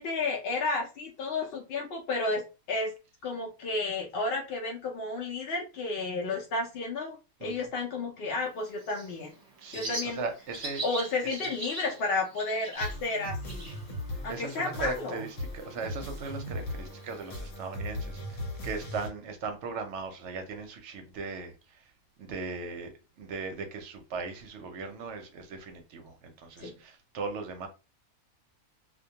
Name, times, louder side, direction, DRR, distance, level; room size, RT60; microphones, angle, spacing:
voice 1, 0.0-2.4 2.7-2.9 3.2-9.3 9.7-10.2 10.8-13.7 14.2-15.2 26.6-26.7, left 3 dB, 65° left, 0.6 m, -32 dB
Bird, 8.4-17.4, right 2 dB, 35° right, 0.9 m, -43 dB
voice 2, 9.6-10.8 11.2-11.5 14.3-21.9 22.2-27.7, right 4 dB, 65° right, 0.8 m, -38 dB
sound 1, 12.7-19.1, left 1 dB, 80° left, 1.3 m, -38 dB
2.4 x 2.2 x 2.7 m
omnidirectional pair, 1.5 m